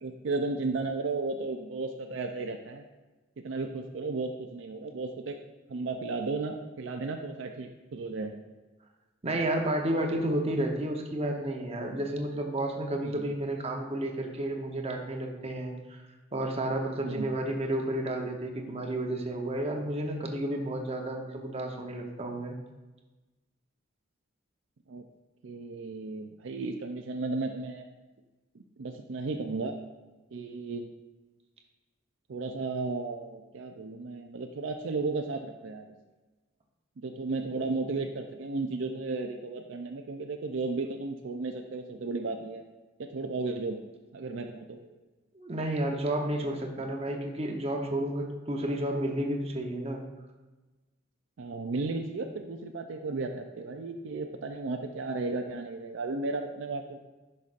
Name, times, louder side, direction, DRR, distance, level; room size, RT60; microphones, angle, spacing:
voice 1, 0.0-2.9 3.4-5.4 5.7-8.3 13.0-13.2 17.0-17.3 24.9-25.0 25.4-27.9 28.5-29.8 30.3-30.8 32.3-35.9 37.0-42.6 43.0-43.8 44.1-44.8 51.4-57.0, right 3 dB, 65° right, 4 dB, 0.5 m, -34 dB
voice 2, 9.2-16.0 16.3-22.6 45.3-50.0, right 1 dB, 30° right, 2 dB, 0.9 m, -31 dB
10.5 x 5.4 x 2.5 m, 1.2 s
head